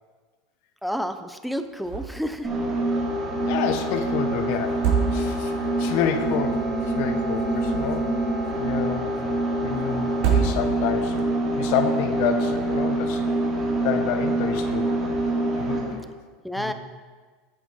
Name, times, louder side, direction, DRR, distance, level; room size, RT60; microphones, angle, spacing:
voice 1, 0.8-2.5 16.4-16.7, equal, ahead, 9 dB, 0.6 m, -30 dB
sound 1, 1.8-2.3 2.6-2.7 4.6-5.6 7.3-8.2 10.1-11.0, right 7 dB, 65° right, 3.3 m, -26 dB
sound 2, 2.4-16.0, right 1 dB, 25° right, 3.1 m, -25 dB
voice 2, 3.4-5.5 5.8-8.1 8.6-9.1 9.6-11.3 11.6-13.2 13.8-14.9 15.6-15.8 16.6-16.7, left 8 dB, 65° left, 8 dB, 1.2 m, -29 dB
11.5 x 8.1 x 4.7 m, 1.4 s
supercardioid pair, 145°, 0 cm